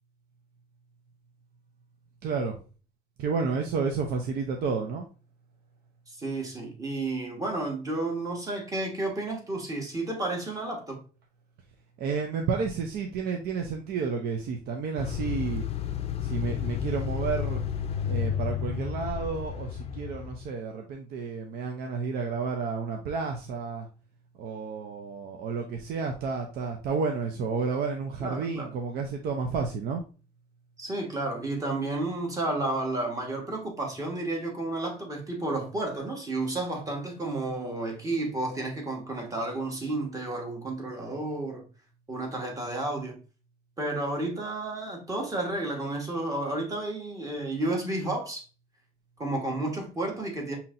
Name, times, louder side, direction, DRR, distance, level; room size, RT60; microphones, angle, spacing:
voice 1, 2.2-2.6 3.2-5.1 12.0-15.7 16.2-17.6 18.0-23.9 24.4-30.0, right 5 dB, 70° right, 0.6 m, -31 dB
voice 2, 6.1-11.0 28.2-28.7 30.8-41.7 42.1-43.2 43.8-48.4 49.2-50.6, right 2 dB, 20° right, 1.4 m, -31 dB
sound 1, 15.0-20.5, left 9 dB, 35° left, 0.5 m, -31 dB
5.5 x 2.8 x 2.5 m
cardioid pair, 110°, 17 cm